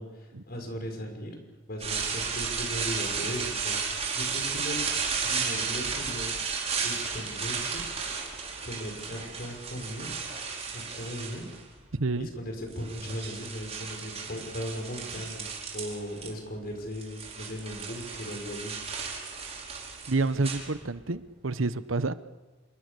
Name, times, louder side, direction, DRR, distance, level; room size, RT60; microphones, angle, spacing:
voice 1, 0.0-1.4 1.6-4.8 5.3-6.3 6.8-7.8 8.6-10.1 10.7-11.5 12.2-18.8, equal, 50° left, 4 dB, 6.0 m, -38 dB
sound 1, 1.8-11.7 12.5-16.3 16.6-21.2, right 5 dB, 35° right, 4.8 m, -34 dB
voice 2, 11.9-12.3 20.1-22.1, right 3 dB, 90° right, 14 dB, 1.0 m, -28 dB
27.5 x 22.0 x 6.9 m, 1.3 s
head